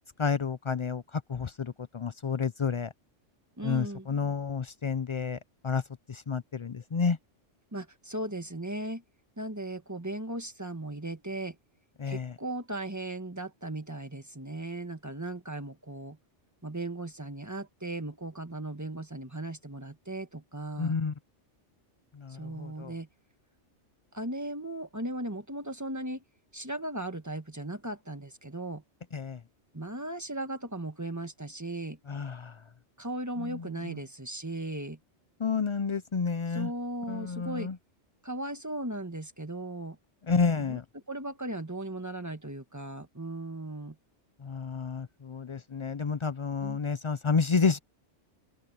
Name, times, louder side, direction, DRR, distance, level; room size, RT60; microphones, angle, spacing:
voice 1, 0.2-1.0 1.3-2.9 3.6-5.4 5.6-5.8 6.1-7.2 12.0-12.3 20.8-21.1 22.2-22.9 29.1-29.4 32.1-32.5 33.5-33.6 35.4-36.7 37.1-37.7 40.3-40.8 44.4-47.8, left 5 dB, 55° left, 0.3 m, -30 dB
voice 2, 3.6-4.1 7.7-9.0 9.4-11.6 12.0-16.2 16.6-21.0 22.3-23.1 24.1-26.2 26.5-28.8 29.7-32.0 33.0-35.0 36.5-37.7 38.2-40.0 40.3-44.0 46.6-46.8, right 1 dB, 15° right, 1.4 m, -37 dB
open air
omnidirectional pair, 1.3 m